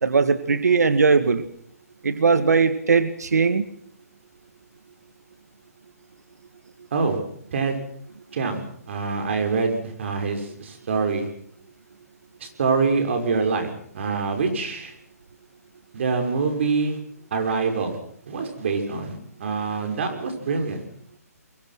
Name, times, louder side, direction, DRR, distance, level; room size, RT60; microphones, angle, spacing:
voice 1, 0.0-1.4 2.0-3.6, right 5 dB, 80° right, 11 dB, 2.0 m, -19 dB
voice 2, 8.3-11.3 12.4-14.9 15.9-17.0 17.3-18.0 18.3-20.8, right 4 dB, 50° right, 5 dB, 6.3 m, -25 dB
26.0 x 23.0 x 6.1 m, 0.66 s
hypercardioid pair, 160°, 9 cm